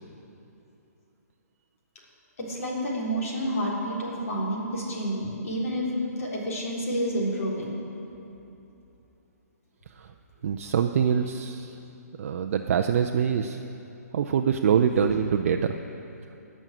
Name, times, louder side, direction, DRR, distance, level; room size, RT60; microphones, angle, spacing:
voice 1, 2.4-5.9 6.2-7.7 14.8-15.1, equal, 60° left, -4 dB, 3.9 m, -29 dB
voice 2, 10.4-11.7 12.2-13.6 14.1-15.8, right 7 dB, 55° right, 5 dB, 0.5 m, -24 dB
18.5 x 6.3 x 7.5 m, 2.9 s
hypercardioid pair, 145°, 9 cm